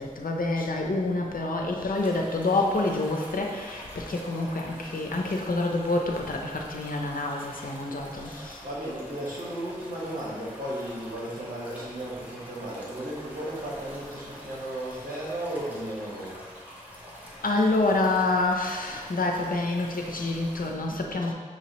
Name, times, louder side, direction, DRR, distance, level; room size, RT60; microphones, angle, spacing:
voice 1, 0.0-8.6 17.4-21.3, left 2 dB, 80° left, 1 dB, 0.6 m, -27 dB
sound 1, 1.9-20.7, equal, 10° right, 1.0 m, -46 dB
voice 2, 8.6-16.5, right 1 dB, 85° right, -6 dB, 1.3 m, -35 dB
6.0 x 2.9 x 3.0 m, 1.5 s
wide cardioid pair, 45°, 14 cm